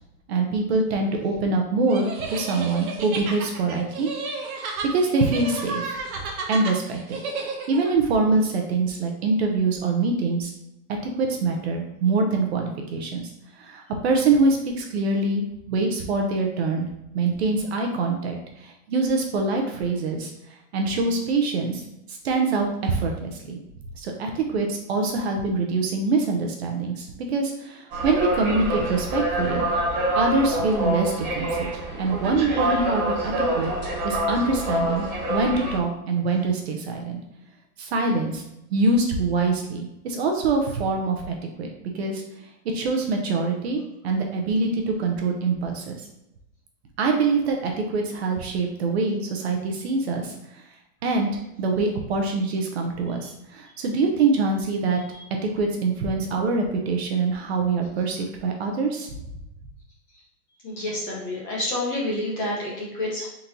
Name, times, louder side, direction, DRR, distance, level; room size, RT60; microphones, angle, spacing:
voice 1, 0.3-5.9 6.5-7.2 7.7-10.5 11.2-13.2 13.6-16.9 17.1-20.3 20.7-21.8 22.1-23.6 24.0-29.7 30.1-31.7 32.0-33.7 34.0-37.2 37.8-38.4 38.7-41.7 41.9-42.2 42.7-45.9 47.0-50.3 51.0-55.0 55.5-59.1, right 3 dB, 45° right, 2 dB, 0.7 m, -24 dB
sound 1, 1.9-7.9, right 4 dB, 65° right, 1.1 m, -32 dB
sound 2, 27.9-35.8, right 1 dB, 15° right, 1.0 m, -26 dB
voice 2, 60.6-63.3, left 1 dB, 15° left, -5 dB, 0.8 m, -28 dB
4.0 x 3.9 x 2.9 m, 0.85 s
hypercardioid pair, 160°, 46 cm